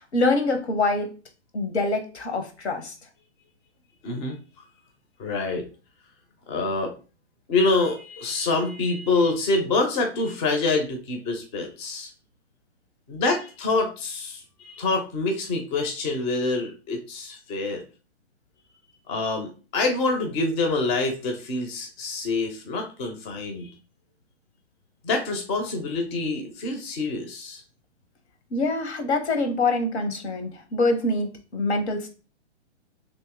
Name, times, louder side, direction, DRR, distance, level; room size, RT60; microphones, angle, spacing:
voice 1, 0.1-1.1 1.5-3.0 28.5-32.1, left 2 dB, 70° left, 7 dB, 1.0 m, -25 dB
voice 2, 4.0-4.4 5.2-5.7 6.5-6.9 7.5-12.1 13.1-17.8 19.1-23.7 25.0-27.6, left 3 dB, 25° left, 4 dB, 0.6 m, -26 dB
3.0 x 2.7 x 3.5 m, 0.34 s
hypercardioid pair, 130°, 35 cm